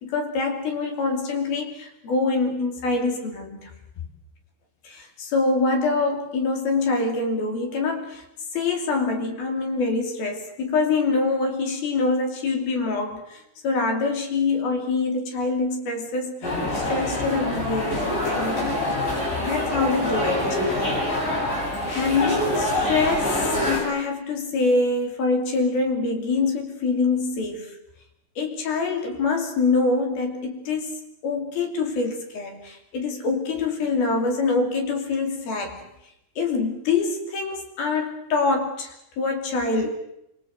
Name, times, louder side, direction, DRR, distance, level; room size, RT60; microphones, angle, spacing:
voice 1, 0.0-3.7 4.8-8.2 8.5-18.7 19.2-20.6 21.9-27.8 28.4-35.8 36.4-39.9, left 3 dB, 75° left, 3 dB, 4.9 m, -25 dB
sound 1, 16.4-23.8, left 1 dB, 60° left, 9.3 m, -25 dB
25.5 x 22.5 x 8.0 m, 0.82 s
omnidirectional pair, 4.3 m